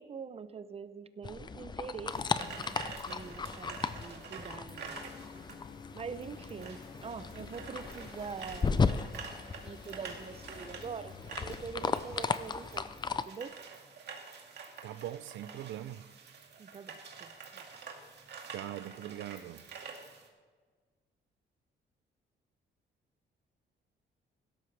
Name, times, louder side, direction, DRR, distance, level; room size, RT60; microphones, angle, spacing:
voice 1, 0.0-2.8 3.1-5.0 5.9-8.9 9.6-11.2 11.4-12.9 13.2-13.6 16.6-17.6, right 6 dB, 30° right, 0.6 m, -44 dB
sound 1, 1.2-13.2, left 5 dB, 25° left, 0.5 m, -36 dB
sound 2, 2.1-20.3, right 5 dB, 65° right, 2.1 m, -48 dB
sound 3, 4.6-12.2, left 6 dB, 50° left, 1.0 m, -53 dB
voice 2, 14.8-16.0 18.5-19.6, right 12 dB, 85° right, 0.5 m, -41 dB
16.5 x 12.5 x 3.4 m
cardioid pair, 125°, 19 cm